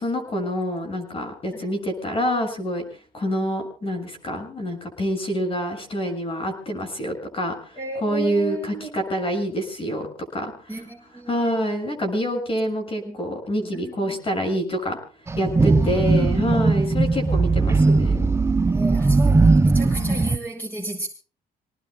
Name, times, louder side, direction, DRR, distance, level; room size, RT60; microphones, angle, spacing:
voice 1, 0.0-2.8 3.1-10.1 10.3-10.8 11.3-15.0 15.4-18.3 19.9-20.2, equal, 35° left, 5 dB, 7.0 m, -27 dB
voice 2, 7.8-8.9 10.7-11.5 13.0-13.2 13.6-14.4 15.6-16.5 18.7-21.1, right 2 dB, 10° left, 0 dB, 7.4 m, -34 dB
sound 1, 15.3-20.4, right 3 dB, 15° right, 0.7 m, -19 dB
29.5 x 18.5 x 2.3 m, 0.37 s
cardioid pair, 110°, 17 cm